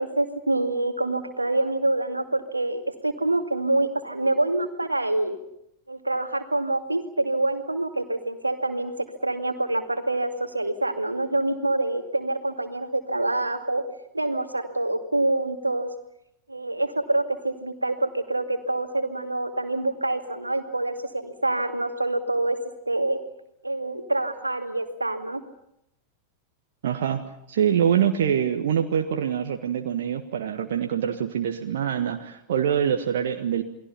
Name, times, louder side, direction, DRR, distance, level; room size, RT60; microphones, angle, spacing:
voice 1, 0.0-5.4 5.9-8.9 9.2-13.8 14.1-15.9 16.5-22.6 22.9-23.2 23.6-25.4, right 2 dB, 85° right, 6 dB, 2.3 m, -26 dB
voice 2, 26.8-33.6, right 8 dB, 60° right, 5 dB, 1.5 m, -25 dB
29.0 x 21.5 x 5.7 m, 0.78 s
figure-of-eight pair, 90°, 0 cm